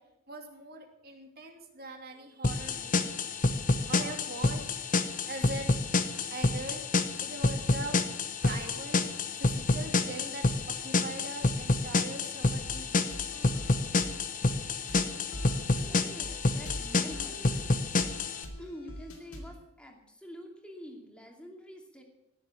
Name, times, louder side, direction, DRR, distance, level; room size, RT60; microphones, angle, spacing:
voice 1, 0.3-3.1 3.9-4.7 5.2-5.8 6.3-6.8 7.2-8.0 8.4-9.1 9.4-10.5 10.8-13.2, right 2 dB, 45° right, 3 dB, 2.7 m, -41 dB
sound 1, 2.4-18.4, left 3 dB, 40° left, 1.0 m, -29 dB
sound 2, 12.7-19.6, equal, 90° left, 3.5 m, -44 dB
voice 2, 15.9-17.4 18.6-22.0, equal, 5° left, 1 dB, 2.7 m, -47 dB
17.0 x 7.7 x 8.6 m, 0.87 s
head